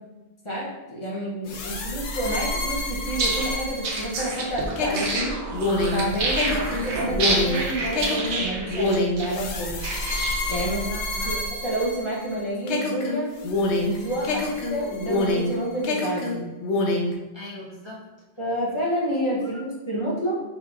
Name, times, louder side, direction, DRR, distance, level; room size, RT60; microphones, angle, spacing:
voice 1, 0.4-5.3 5.9-9.9 10.5-10.8 11.2-13.3 13.8-14.3 14.7-16.5 18.4-20.4, right 1 dB, 30° left, -5 dB, 0.7 m, -29 dB
sound 1, 1.5-12.3 12.7-15.6 15.8-17.2, left 2 dB, 80° left, 0.9 m, -27 dB
sound 2, 3.1-10.7, right 2 dB, 80° right, 1.0 m, -28 dB
voice 2, 10.7-11.3 14.2-14.5 17.3-18.1 19.4-19.5, left 2 dB, 45° right, -4 dB, 0.3 m, -39 dB
4.9 x 3.2 x 2.3 m, 1.1 s
omnidirectional pair, 1.1 m